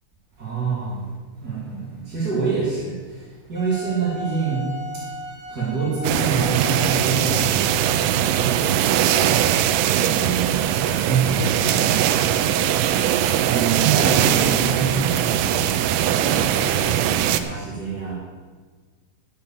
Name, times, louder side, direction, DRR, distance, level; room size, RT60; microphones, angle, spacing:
voice 1, 0.4-5.1 5.4-9.4 10.0-12.5 13.0-18.1, right 5 dB, 25° right, -9 dB, 2.4 m, -27 dB
Wind instrument woodwind instrument, 3.5-8.1, left 1 dB, 10° left, 0.5 m, -37 dB
sound 1, 6.0-17.4, right 11 dB, 85° right, 3.2 m, -20 dB
13.0 x 7.3 x 7.0 m, 1.5 s
omnidirectional pair, 5.8 m